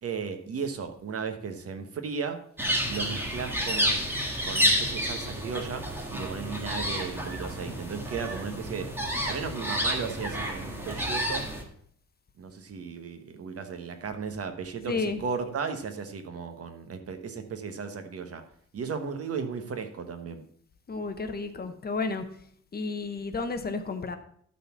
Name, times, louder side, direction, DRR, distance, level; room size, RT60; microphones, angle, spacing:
voice 1, 0.0-2.4 2.9-4.1 4.4-9.0 9.2-11.5 12.4-18.4 18.7-20.4, right 5 dB, 50° right, 7 dB, 1.2 m, -35 dB
sound 1, 2.6-11.6, equal, 5° right, 1.6 m, -30 dB
voice 2, 14.9-15.2 20.9-22.2 22.7-24.2, left 3 dB, 30° left, 8 dB, 0.9 m, -31 dB
12.5 x 4.2 x 7.0 m, 0.63 s
wide cardioid pair, 160°, 29 cm